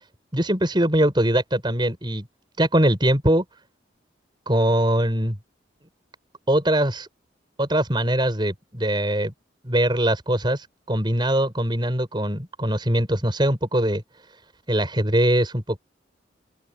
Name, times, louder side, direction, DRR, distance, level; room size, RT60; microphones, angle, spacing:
voice 1, 0.3-2.2 2.6-3.4 4.5-5.4 6.5-7.1 7.6-9.3 9.6-14.0 14.7-15.8, right 1 dB, 25° right, 6.4 m, -22 dB
open air
head